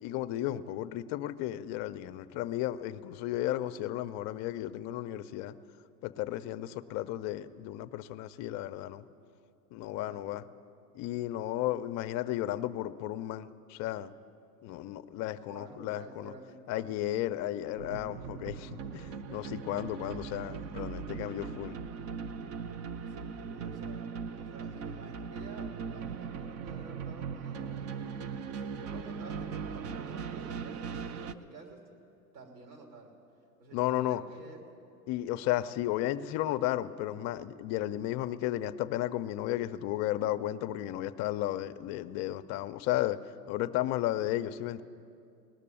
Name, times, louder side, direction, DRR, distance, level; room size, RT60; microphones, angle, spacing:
voice 1, 0.0-5.6 6.0-9.0 9.7-10.4 10.9-14.1 14.6-16.3 16.7-21.8 33.7-34.2 35.1-43.2 43.5-44.8, left 14 dB, 35° left, 12 dB, 0.5 m, -34 dB
voice 2, 10.0-10.4 11.7-11.8 15.4-17.0 23.1-28.1 28.5-31.8 32.3-33.1 33.6-34.6, right 3 dB, 80° right, 1 dB, 3.3 m, -51 dB
sound 1, 17.8-31.3, right 6 dB, 30° right, 0.5 m, -39 dB
18.5 x 6.7 x 9.9 m, 2.4 s
hypercardioid pair, 105°, 50 cm